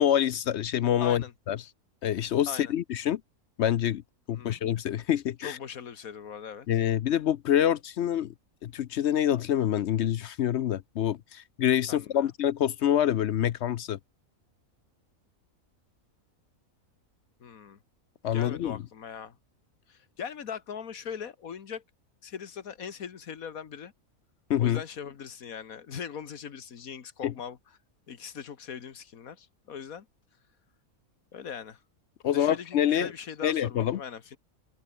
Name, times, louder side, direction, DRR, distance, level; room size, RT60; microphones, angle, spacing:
voice 1, 0.0-1.6 2.0-3.2 3.6-4.0 4.3-5.6 6.7-8.3 8.6-14.0 18.2-18.8 24.5-24.8 27.2-27.3 32.2-33.1 33.4-34.0, left 10 dB, 60° left, 0.8 m, -26 dB
voice 2, 1.0-1.3 2.5-2.7 4.3-4.6 5.4-6.7 11.9-12.3 17.4-17.8 18.3-19.4 19.9-21.8 22.2-23.9 24.6-27.6 28.1-30.1 31.3-31.8 32.3-34.4, left 7 dB, 85° left, 1.8 m, -40 dB
open air
omnidirectional pair, 1.5 m